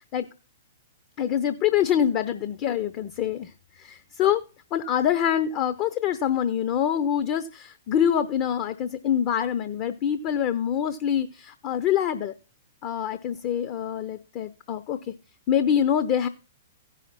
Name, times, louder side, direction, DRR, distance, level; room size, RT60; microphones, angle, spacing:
voice 1, 1.2-4.4 4.7-12.3 12.8-15.1 15.5-16.3, left 9 dB, 35° left, 10 dB, 0.7 m, -25 dB
15.5 x 5.8 x 4.1 m, 0.34 s
figure-of-eight pair, 110°, 0 cm